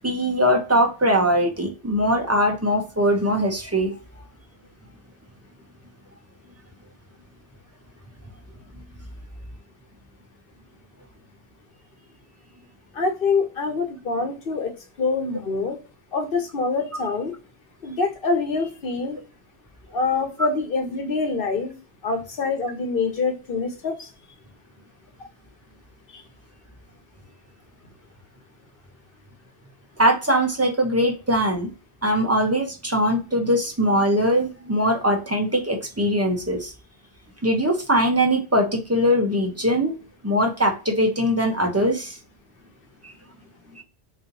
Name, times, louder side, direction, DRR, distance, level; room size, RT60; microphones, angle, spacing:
voice 1, 0.0-3.9 30.0-31.7 32.0-36.7 37.4-40.0 40.2-42.2 43.7-43.8, equal, 15° right, 3 dB, 0.7 m, -21 dB
voice 2, 12.9-14.7 15.0-15.8 16.1-17.3 17.8-19.2 19.9-21.7 22.0-24.1 26.1-26.2, left 4 dB, 55° left, 6 dB, 1.1 m, -25 dB
4.3 x 2.7 x 2.6 m, 0.33 s
omnidirectional pair, 1.1 m